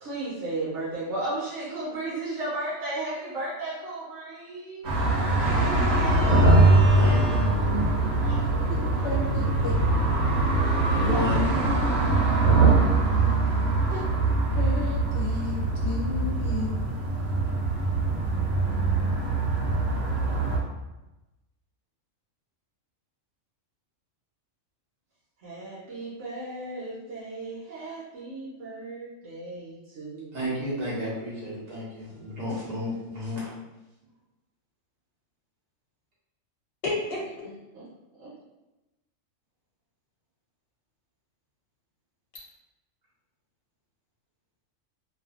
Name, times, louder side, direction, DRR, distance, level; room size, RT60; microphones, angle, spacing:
voice 1, 0.0-5.0 5.4-7.5 8.2-12.3 25.4-30.8 37.7-37.8 38.2-38.3, right 2 dB, 65° right, -9 dB, 1.0 m, -35 dB
sound 1, 4.8-20.6, right 2 dB, 90° right, 1.1 m, -23 dB
voice 2, 6.9-7.4 10.9-11.5 30.3-33.4, left 1 dB, 45° right, -8 dB, 0.6 m, -31 dB
voice 3, 9.0-9.7 13.9-14.0 14.6-16.9 36.8-37.4, left 3 dB, 55° left, -5 dB, 0.8 m, -33 dB
2.6 x 2.3 x 2.4 m, 1.0 s
omnidirectional pair, 1.4 m